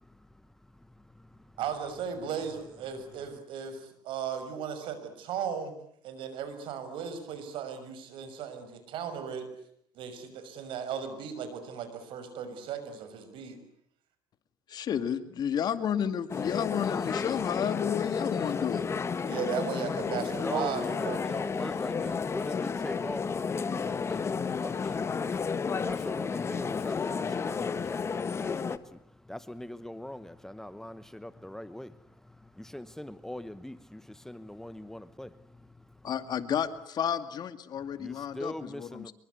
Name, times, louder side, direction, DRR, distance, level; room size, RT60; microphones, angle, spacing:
voice 1, 0.0-1.6 20.3-36.1 37.7-39.1, left 1 dB, 5° left, 1.0 m, -42 dB
voice 2, 1.6-5.7 6.0-9.5 9.9-13.6 19.3-21.3, right 7 dB, 70° right, 6.2 m, -36 dB
voice 3, 14.7-18.8 36.0-39.1, left 8 dB, 50° left, 2.3 m, -31 dB
sound 1, 16.3-28.8, left 5 dB, 30° left, 1.4 m, -32 dB
25.0 x 23.0 x 9.5 m
cardioid pair, 105°, 9 cm